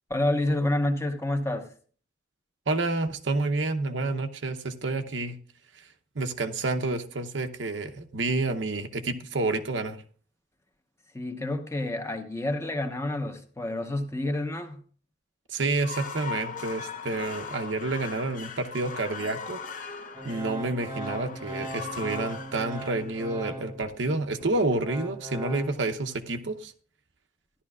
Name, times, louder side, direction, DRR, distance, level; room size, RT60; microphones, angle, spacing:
voice 1, 0.1-1.7 11.1-14.8, left 1 dB, 15° left, 6 dB, 1.0 m, -28 dB
voice 2, 2.7-5.4 6.1-10.0 15.5-19.6 20.2-26.7, right 2 dB, 90° right, 6 dB, 0.8 m, -29 dB
sound 1, 15.7-23.8, left 5 dB, 45° left, 0.9 m, -40 dB
Organ, 20.1-24.0 24.4-25.7, right 1 dB, 20° right, 1.0 m, -38 dB
14.0 x 11.5 x 2.4 m, 0.44 s
head